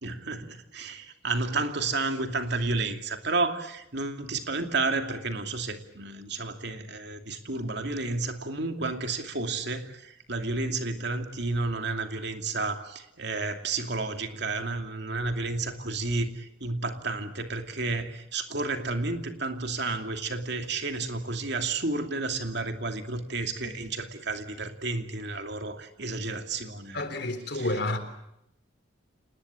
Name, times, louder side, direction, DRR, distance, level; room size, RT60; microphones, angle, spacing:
voice 1, 0.0-27.0 27.5-27.7, right 3 dB, 60° right, 2.7 m, -31 dB
voice 2, 26.9-28.0, left 2 dB, 60° left, 3.7 m, -29 dB
28.0 x 20.0 x 8.8 m
head